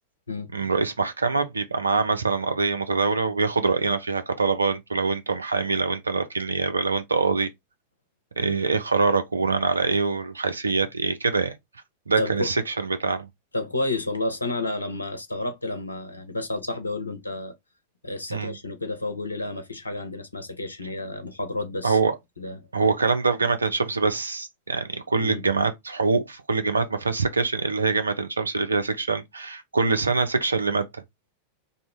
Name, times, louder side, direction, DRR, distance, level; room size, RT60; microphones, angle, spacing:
voice 1, 0.5-7.5 8.4-11.6 12.1-13.3 18.3-18.6 21.8-22.2 22.7-30.9, right 4 dB, 75° right, 0.4 m, -24 dB
voice 2, 12.2-12.5 13.5-17.5 18.0-22.0 22.4-22.6 25.2-25.4, left 2 dB, 80° left, 0.5 m, -30 dB
2.5 x 2.0 x 3.4 m
figure-of-eight pair, 90°, 0 cm